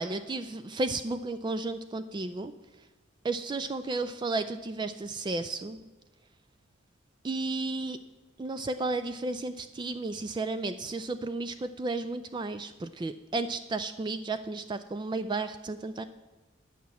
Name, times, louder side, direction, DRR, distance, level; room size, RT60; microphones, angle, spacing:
voice 1, 0.0-2.5 3.2-5.8 7.2-8.0 8.4-16.0, right 3 dB, 20° right, 11 dB, 0.3 m, -33 dB
9.5 x 5.7 x 8.2 m, 1.2 s
head